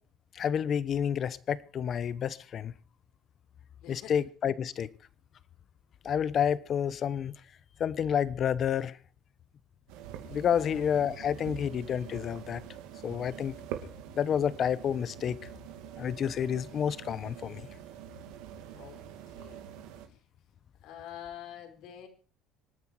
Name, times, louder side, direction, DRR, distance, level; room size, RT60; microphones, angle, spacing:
voice 1, 0.3-2.7 3.9-4.9 6.0-7.3 7.8-8.9 10.3-12.6 13.0-13.6 14.1-15.4 16.0-17.6, left 8 dB, 40° left, 1.0 m, -29 dB
voice 2, 3.8-4.2 10.6-10.8 18.7-19.6 20.1-20.2 20.8-22.1, left 10 dB, 70° left, 4.9 m, -47 dB
sound 1, 9.9-20.1, right 8 dB, 85° right, 2.6 m, -45 dB
25.5 x 9.7 x 4.8 m
cardioid pair, 125°, 0 cm